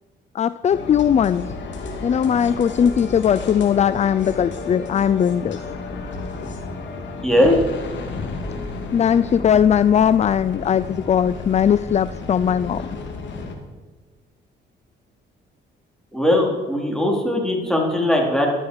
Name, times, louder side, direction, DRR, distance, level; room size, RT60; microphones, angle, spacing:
voice 1, 0.3-1.5 2.0-5.6 8.2-8.3 8.9-12.9, left 8 dB, 35° left, 16 dB, 0.4 m, -19 dB
sound 1, 0.7-13.5, left 3 dB, 65° left, 2.7 m, -32 dB
voice 2, 7.2-7.5 16.1-18.5, left 1 dB, 5° left, -1 dB, 4.2 m, -19 dB
14.5 x 12.0 x 4.8 m, 1.3 s
cardioid pair, 90°, 20 cm